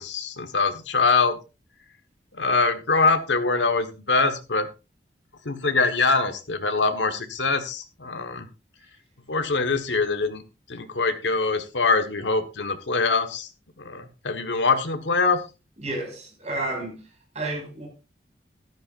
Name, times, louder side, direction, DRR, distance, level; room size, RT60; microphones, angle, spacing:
voice 1, 0.0-1.4 2.3-4.7 5.4-8.5 9.3-10.4 10.7-13.5 13.8-15.4, left 4 dB, 85° left, 1.3 m, -23 dB
voice 2, 15.8-17.0 17.3-17.9, right 2 dB, 40° right, 5.5 m, -31 dB
13.5 x 12.0 x 2.5 m
head